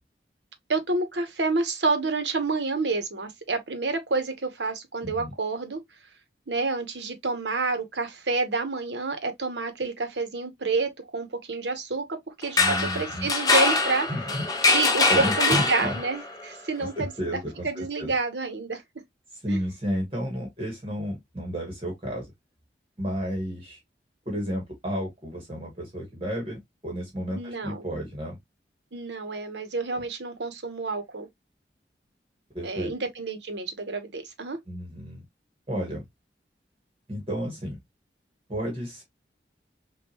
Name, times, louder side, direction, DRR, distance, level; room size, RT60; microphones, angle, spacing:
voice 1, 0.7-5.8 6.5-12.0 12.4-14.1 14.7-17.1 17.6-18.8 19.5-19.6 27.3-27.8 28.9-31.3 32.6-34.6, right 3 dB, 90° right, 1.1 m, -29 dB
voice 2, 5.0-5.3 12.6-13.3 14.1-14.7 15.1-16.0 16.8-18.1 19.3-22.3 23.0-23.8 24.2-28.4 29.9-30.0 32.5-32.9 34.7-35.2 35.7-36.0 37.1-37.8 38.5-39.0, equal, 30° right, 1.4 m, -32 dB
sound 1, 12.4-16.3, left 3 dB, 20° left, 0.6 m, -23 dB
5.4 x 2.6 x 3.0 m
head